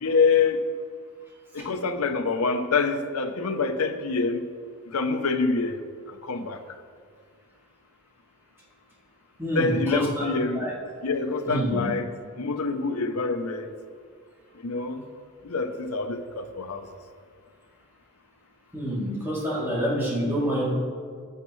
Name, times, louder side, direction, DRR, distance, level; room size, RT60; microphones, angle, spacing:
voice 1, 0.0-0.6 1.5-4.5 4.9-5.8 6.2-6.6 9.5-10.7 11.0-12.1 12.4-13.7 14.6-15.0 15.4-16.9, left 4 dB, 80° left, 8 dB, 0.7 m, -26 dB
voice 2, 9.4-10.3 10.5-10.7 11.5-11.8 18.7-20.7, equal, 10° right, -7 dB, 2.8 m, -27 dB
14.5 x 8.0 x 3.2 m, 2.1 s
head